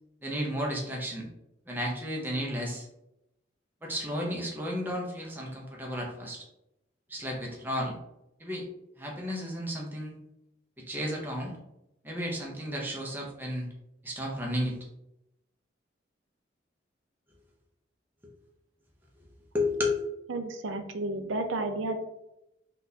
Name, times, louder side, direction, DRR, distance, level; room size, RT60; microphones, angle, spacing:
voice 1, 0.2-1.3 1.7-2.9 3.8-6.4 7.1-8.0 8.4-8.6 9.0-10.2 10.8-11.6 12.0-13.7 14.0-14.8 19.5-20.0, left 1 dB, 10° right, -2 dB, 0.6 m, -33 dB
voice 2, 20.3-22.0, right 2 dB, 85° right, 6 dB, 0.5 m, -32 dB
3.7 x 2.4 x 2.7 m, 0.85 s
head